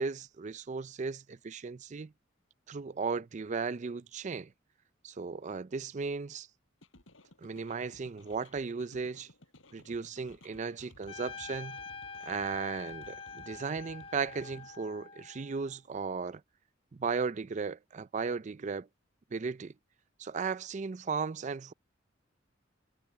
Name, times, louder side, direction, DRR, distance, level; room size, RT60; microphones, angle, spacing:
voice 1, 0.0-2.1 2.7-4.5 5.0-6.5 7.4-9.3 9.7-11.8 12.3-16.4 16.9-18.9 19.3-19.7 20.2-21.7, right 5 dB, 40° right, 0.4 m, -36 dB
sound 1, 6.8-14.7, left 2 dB, 90° left, 6.3 m, -58 dB
Trumpet, 11.1-15.8, left 5 dB, 25° left, 0.7 m, -46 dB
head